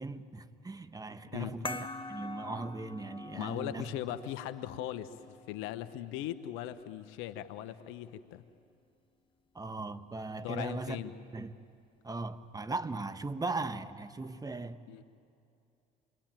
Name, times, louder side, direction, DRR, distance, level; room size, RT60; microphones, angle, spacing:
voice 1, 0.0-3.9 9.5-11.0 11.3-11.5 12.0-14.8, right 3 dB, 20° right, 1.4 m, -38 dB
sound 1, 1.7-6.7, left 3 dB, 25° left, 1.3 m, -45 dB
voice 2, 3.3-8.4 10.3-11.1 14.9-15.0, left 12 dB, 75° left, 1.1 m, -39 dB
29.0 x 22.5 x 9.1 m
hypercardioid pair, 70°, 20 cm